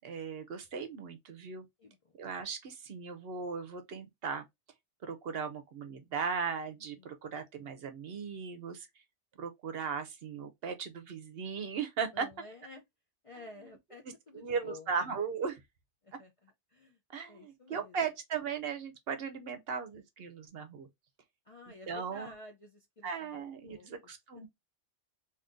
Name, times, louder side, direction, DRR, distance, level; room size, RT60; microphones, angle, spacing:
voice 1, 0.0-1.7 2.2-4.4 5.1-8.9 9.4-12.3 14.3-15.6 17.1-20.9 21.9-22.3 23.0-24.5, right 6 dB, 60° right, 0.8 m, -37 dB
voice 2, 1.8-2.1 7.0-7.4 12.1-12.8 13.2-15.1 16.0-17.0 17.3-17.9 21.5-23.9, left 3 dB, 45° left, 0.4 m, -52 dB
2.7 x 2.5 x 3.5 m
omnidirectional pair, 1.2 m